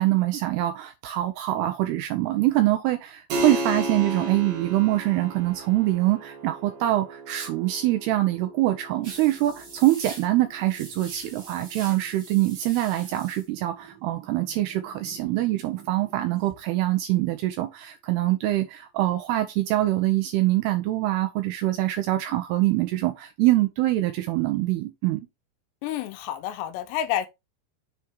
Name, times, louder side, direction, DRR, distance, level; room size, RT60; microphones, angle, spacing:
voice 1, 0.0-25.3, right 16 dB, 80° right, 2.5 m, -24 dB
Keyboard (musical), 3.3-13.5, right 1 dB, 60° right, 3.2 m, -36 dB
sound 1, 9.0-16.5, right 4 dB, 45° right, 1.5 m, -45 dB
voice 2, 25.8-27.3, left 11 dB, 80° left, 2.9 m, -29 dB
7.1 x 3.3 x 4.6 m
omnidirectional pair, 5.0 m